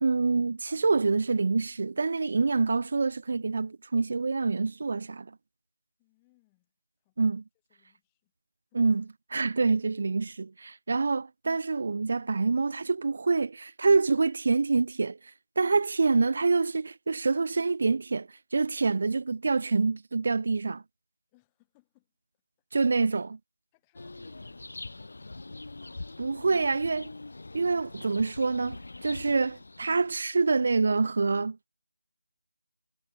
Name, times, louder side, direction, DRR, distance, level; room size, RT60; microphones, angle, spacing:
voice 1, 0.0-5.4 7.2-7.4 8.8-9.0 9.3-15.2 15.6-20.8 22.7-23.4 26.2-27.1 27.5-31.6, right 4 dB, 45° right, 0.4 m, -26 dB
voice 2, 6.0-6.7 7.0-7.4 7.7-8.3 8.7-8.8 21.3-22.1 23.7-25.6, left 24 dB, 10° left, 6.8 m, -69 dB
sound 1, 23.9-30.3, left 2 dB, 65° left, 0.6 m, -43 dB
figure-of-eight pair, 170°, 0 cm